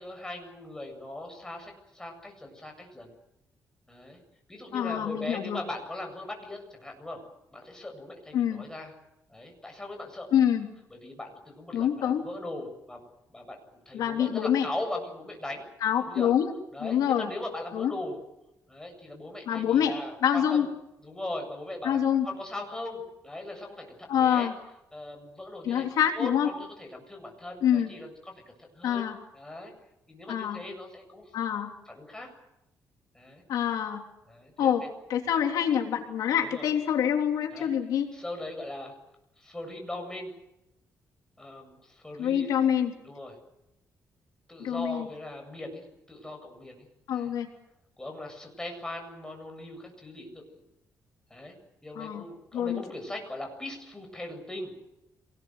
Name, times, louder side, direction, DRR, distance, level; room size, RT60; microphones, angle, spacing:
voice 1, 0.0-3.1 3.9-4.2 4.5-7.2 7.5-8.9 9.3-10.3 10.9-13.0 13.3-15.6 16.0-16.3 16.7-18.2 18.7-20.7 21.0-24.5 24.9-29.7 30.1-31.3 31.9-32.3 33.1-33.4 34.3-34.9 36.4-36.7 37.5-37.7 38.1-38.9 39.4-40.3 41.4-42.5 43.0-43.3 44.5-46.9 47.1-47.3 48.0-50.6 51.3-51.6 51.8-54.7, left 1 dB, 10° left, 2 dB, 8.0 m, -39 dB
voice 2, 4.7-5.6 8.3-8.7 10.3-10.7 11.7-12.2 13.9-14.7 15.8-16.4 16.8-17.3 17.7-17.9 19.5-20.0 20.2-20.7 21.8-22.3 24.1-24.5 25.6-26.5 27.6-27.9 28.8-29.2 30.3-30.6 31.3-31.7 33.5-34.0 34.6-38.1 42.2-42.9 44.6-45.1 47.1-47.5 52.0-52.2 52.5-52.8, left 9 dB, 85° left, 3 dB, 3.3 m, -26 dB
27.0 x 20.0 x 8.0 m, 0.86 s
cardioid pair, 125°, 6 cm